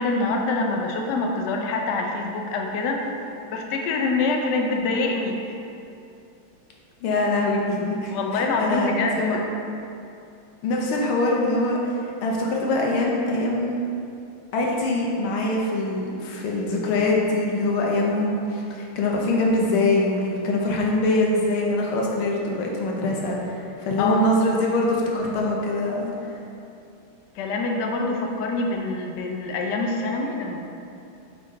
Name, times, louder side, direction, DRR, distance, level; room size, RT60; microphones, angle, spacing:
voice 1, 0.0-3.1 3.5-5.6 8.1-9.4 24.0-24.3 27.3-30.6, left 3 dB, 65° left, 1 dB, 1.1 m, -25 dB
voice 2, 7.0-9.4 10.6-11.9 12.2-13.7 14.5-26.3, left 2 dB, 90° left, -2 dB, 1.7 m, -23 dB
8.4 x 3.7 x 3.7 m, 2.6 s
omnidirectional pair, 2.3 m